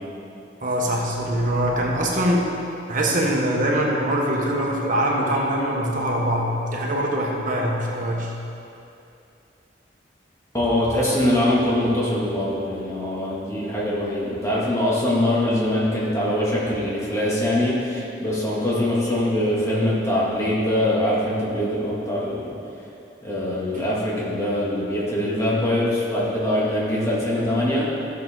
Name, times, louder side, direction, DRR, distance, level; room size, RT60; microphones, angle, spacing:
voice 1, 0.6-2.5 2.9-8.3, right 1 dB, 50° right, -2 dB, 1.3 m, -23 dB
voice 2, 10.5-22.5 23.2-27.9, left 1 dB, 15° left, -7 dB, 2.2 m, -23 dB
14.5 x 6.7 x 3.8 m, 2.7 s
head